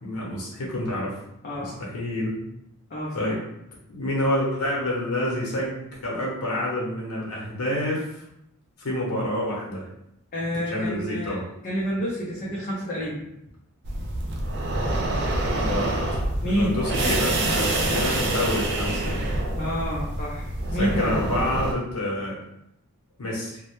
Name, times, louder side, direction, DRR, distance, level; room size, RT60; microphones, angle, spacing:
voice 1, 0.0-1.2 1.6-2.3 3.1-3.4 3.9-5.7 6.0-8.2 8.8-9.9 10.7-11.4 15.5-15.9 16.4-19.2 20.8-22.4 23.2-23.6, left 1 dB, 85° left, -4 dB, 0.8 m, -28 dB
voice 2, 1.4-1.8 2.9-3.3 10.3-11.4 11.6-13.2 16.4-16.8 19.6-21.1, equal, 40° left, -6 dB, 0.5 m, -28 dB
sound 1, 13.8-21.7, right 1 dB, 50° right, 0.4 m, -26 dB
2.1 x 2.0 x 2.9 m, 0.80 s
head